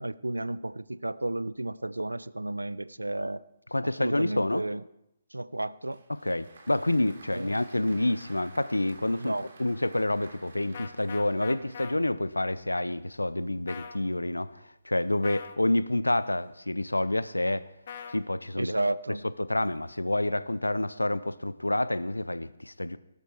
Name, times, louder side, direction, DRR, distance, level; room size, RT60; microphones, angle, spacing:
voice 1, 0.0-3.4 3.8-4.8 5.3-6.0 7.3-7.6 9.2-9.5 18.5-19.2, right 2 dB, 80° right, 18 dB, 0.5 m, -32 dB
voice 2, 3.7-4.6 6.1-14.5 14.8-17.7 18.1-18.7 19.4-23.0, left 1 dB, 85° left, 16 dB, 0.7 m, -28 dB
Applause, 5.9-12.2, right 3 dB, 55° right, 3.0 m, -53 dB
sound 1, 10.7-11.9 13.7-14.0 15.2-15.6 17.9-18.2, left 7 dB, 50° left, 1.2 m, -41 dB
17.5 x 12.5 x 4.7 m, 0.82 s
figure-of-eight pair, 135°, 0 cm